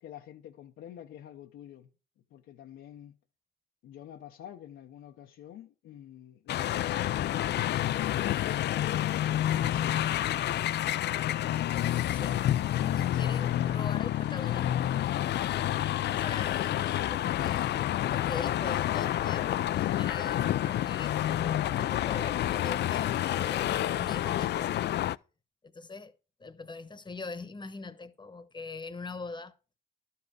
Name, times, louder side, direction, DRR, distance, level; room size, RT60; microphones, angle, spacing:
voice 1, 0.0-1.9 2.3-3.2 3.8-7.0 7.6-10.5, left 11 dB, 80° left, 0.8 m, -47 dB
sound 1, 6.5-25.2, left 12 dB, 60° left, 0.4 m, -29 dB
voice 2, 11.8-12.4 12.7-14.9 16.1-17.7 18.1-24.8 25.6-26.1 26.4-29.5, left 3 dB, 20° left, 1.1 m, -42 dB
12.0 x 5.6 x 4.9 m
cardioid pair, 90°, 20 cm